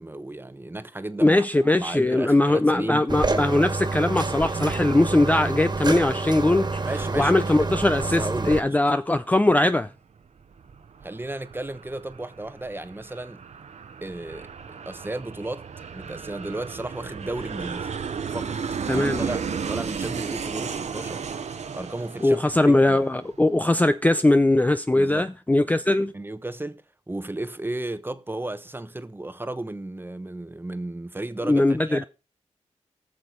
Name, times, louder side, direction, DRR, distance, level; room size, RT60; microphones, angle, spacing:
voice 1, 0.0-3.1 6.9-7.7 8.0-8.8 11.0-13.4 14.0-15.7 15.9-17.9 18.3-18.6 18.9-23.0 24.9-25.3 26.1-32.0, right 2 dB, 15° right, 1.0 m, -34 dB
voice 2, 1.2-6.9 7.2-9.9 18.9-19.2 22.2-26.1 31.4-32.0, left 2 dB, 15° left, 0.5 m, -20 dB
sound 1, 3.1-8.6, right 3 dB, 35° right, 1.8 m, -28 dB
Aircraft, 10.2-23.4, right 6 dB, 70° right, 1.0 m, -34 dB
19.0 x 6.7 x 3.9 m
cardioid pair, 60°, 12 cm